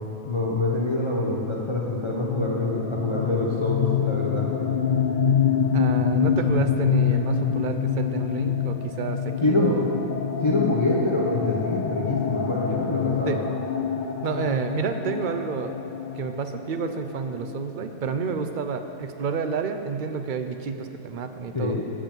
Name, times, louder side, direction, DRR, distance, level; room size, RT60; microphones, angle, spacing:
voice 1, 0.0-4.5 9.4-9.8 10.4-13.4 21.5-21.8, left 2 dB, 25° left, -2 dB, 0.8 m, -25 dB
sound 1, 1.9-17.5, left 7 dB, 75° left, 0.4 m, -26 dB
voice 2, 5.7-9.8 13.3-13.5 14.2-15.8 16.1-21.8, right 5 dB, 60° right, 7 dB, 0.5 m, -29 dB
8.8 x 7.9 x 7.3 m, 2.8 s
omnidirectional pair, 1.5 m